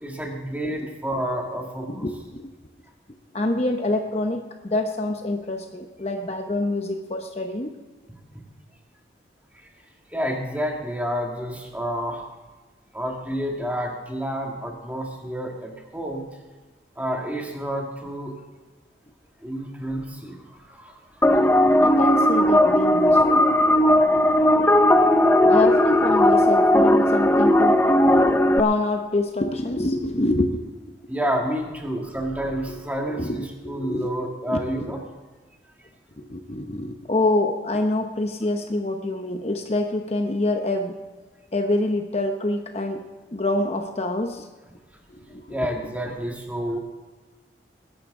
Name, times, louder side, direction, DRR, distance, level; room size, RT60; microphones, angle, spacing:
voice 1, 0.0-2.1 8.4-8.5 10.1-12.3 12.9-16.2 17.0-18.4 19.4-22.0 24.8-24.9 31.1-35.0 45.5-46.8, equal, 10° right, 1 dB, 1.8 m, -29 dB
voice 2, 1.9-2.5 3.3-7.7 21.5-23.6 25.4-27.8 28.5-30.6 32.7-32.8 33.1-34.1 34.5-34.6 36.2-41.0 41.5-43.0 43.3-44.5 45.1-45.6, left 2 dB, 35° left, 5 dB, 0.8 m, -26 dB
sound 1, 21.2-28.6, left 1 dB, 10° left, 0.4 m, -17 dB
21.0 x 11.0 x 3.7 m, 1.3 s
head